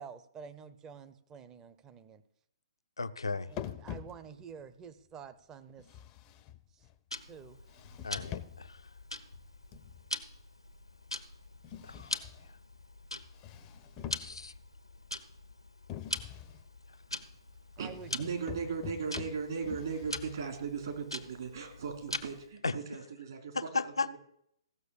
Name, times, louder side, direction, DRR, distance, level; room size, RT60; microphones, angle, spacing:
voice 1, 0.0-2.2 3.5-5.9 6.7-6.8 7.3-7.6 17.8-18.1, right 7 dB, 20° right, 11 dB, 0.8 m, -49 dB
voice 2, 3.0-3.5 8.0-8.9 11.8-12.2 14.2-14.5 22.6-22.8 23.5-24.2, left 3 dB, 75° left, 12 dB, 0.6 m, -35 dB
sound 1, 3.5-4.6 5.8-7.0 7.7-8.8 9.7-10.2 11.6-12.6 13.2-14.7 15.9-16.6 17.8-20.6, left 11 dB, 25° left, 0.6 m, -45 dB
Tick-tock, 7.1-22.5, left 1 dB, 90° left, 1.0 m, -43 dB
voice 3, 17.8-23.5 23.8-23.9, right 5 dB, 55° right, 4 dB, 3.0 m, -37 dB
15.5 x 6.6 x 6.8 m, 0.73 s
figure-of-eight pair, 120°, 3 cm